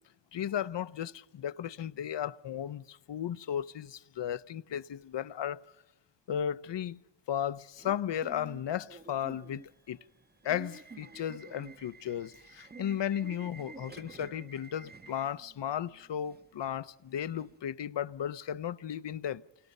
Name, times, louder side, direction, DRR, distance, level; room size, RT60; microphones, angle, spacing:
voice 1, 0.3-5.6 6.3-7.0 7.3-10.0 10.4-19.4, left 9 dB, 65° left, 0.8 m, -35 dB
Subway metro underground / Alarm, 7.7-17.6, right 4 dB, 20° right, 1.0 m, -51 dB
29.0 x 26.0 x 5.4 m
cardioid pair, 70°, 45 cm